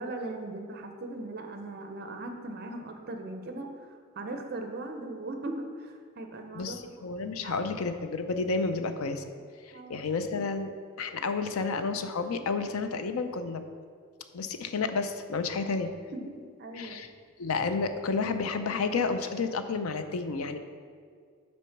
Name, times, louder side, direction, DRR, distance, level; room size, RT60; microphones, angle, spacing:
voice 1, 0.0-7.0 7.4-7.6 9.7-10.1 16.1-16.3 16.6-17.0, right 2 dB, 50° right, 5 dB, 0.7 m, -39 dB
voice 2, 6.5-9.2 9.6-10.7 11.0-13.6 14.3-15.9 16.7-17.1 17.4-20.6, left 4 dB, 90° left, 9 dB, 0.5 m, -31 dB
6.0 x 4.4 x 5.8 m, 2.1 s
head